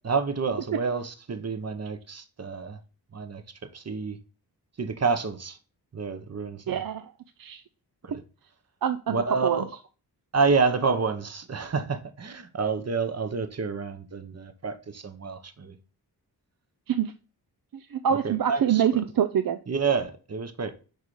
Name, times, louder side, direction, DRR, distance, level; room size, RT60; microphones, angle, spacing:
voice 1, 0.0-2.8 3.1-3.4 3.7-4.2 4.8-5.6 5.9-6.8 8.0-8.2 9.1-9.7 10.3-15.7 18.2-19.0 19.7-20.7, right 5 dB, 40° right, 1.0 m, -28 dB
voice 2, 6.7-7.1 7.4-7.6 8.1-8.2 8.8-9.7 16.9-17.1 17.7-19.6, right 9 dB, 55° right, 0.6 m, -26 dB
6.6 x 4.9 x 3.2 m
cardioid pair, 65°, 41 cm